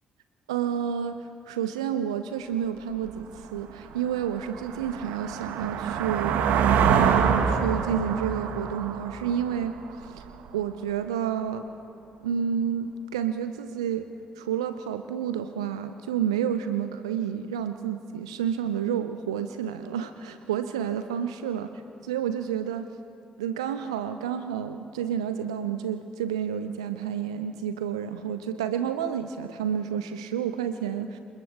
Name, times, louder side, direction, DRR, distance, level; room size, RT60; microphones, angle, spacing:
voice 1, 0.5-6.4 6.9-10.3 10.5-11.6 12.2-14.1 14.4-22.9 23.4-31.2, right 8 dB, 80° right, 10 dB, 0.6 m, -30 dB
sound 1, 3.1-3.2 3.7-10.3, right 7 dB, 65° right, 1.7 m, -26 dB
28.5 x 26.5 x 3.6 m, 2.7 s
figure-of-eight pair, 45°, 3 cm